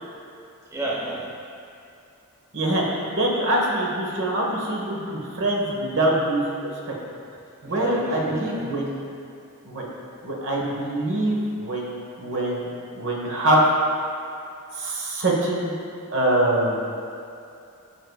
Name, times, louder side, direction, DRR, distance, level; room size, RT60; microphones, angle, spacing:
voice 1, 0.7-1.2 7.6-8.7, right 1 dB, 15° right, -5 dB, 0.9 m, -31 dB
voice 2, 2.5-6.9 7.6-9.0 9.6-9.9 10.2-12.7 12.9-13.6 14.7-15.7 16.1-16.8, right 1 dB, 60° right, -3 dB, 1.2 m, -24 dB
13.5 x 4.7 x 2.3 m, 2.6 s
head